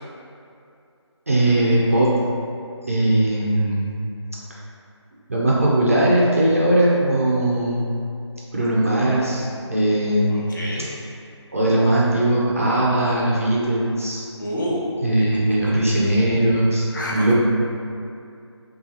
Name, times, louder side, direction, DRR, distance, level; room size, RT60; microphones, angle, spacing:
voice 1, 1.3-2.1 2.9-3.9 5.3-7.9 8.5-10.4 11.5-14.2 15.0-16.8 17.1-17.3, right 1 dB, 30° right, -6 dB, 0.4 m, -19 dB
voice 2, 10.3-10.9 14.4-14.9 15.6-15.7 16.9-17.3, equal, 40° left, -5 dB, 0.7 m, -28 dB
5.6 x 2.3 x 2.8 m, 2.5 s
figure-of-eight pair, 170°, 15 cm